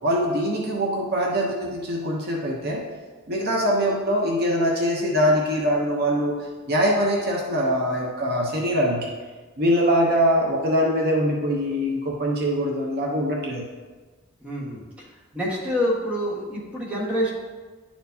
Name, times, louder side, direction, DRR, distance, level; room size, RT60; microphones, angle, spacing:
voice 1, 0.0-2.8 3.3-6.3 6.7-9.1 9.6-13.7, equal, 50° right, -1 dB, 0.8 m, -23 dB
voice 2, 14.4-14.8 15.3-17.3, equal, 5° right, -6 dB, 1.4 m, -26 dB
10.5 x 4.4 x 2.7 m, 1.3 s
head